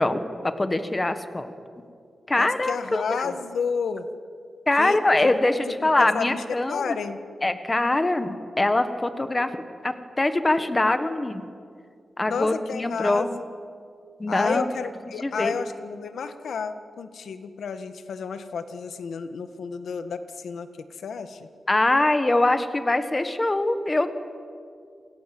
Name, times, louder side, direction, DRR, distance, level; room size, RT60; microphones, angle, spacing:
voice 1, 0.0-1.5 2.3-3.3 4.7-6.9 7.4-9.5 9.8-11.5 12.2-13.3 14.2-14.7 15.2-15.5 21.7-24.1, left 2 dB, 15° left, 9 dB, 1.4 m, -23 dB
voice 2, 2.3-4.1 4.8-5.3 5.6-7.2 12.2-13.4 14.3-21.5, left 6 dB, 85° left, 9 dB, 1.7 m, -31 dB
28.5 x 26.5 x 7.8 m, 2.3 s
wide cardioid pair, 170°, 0 cm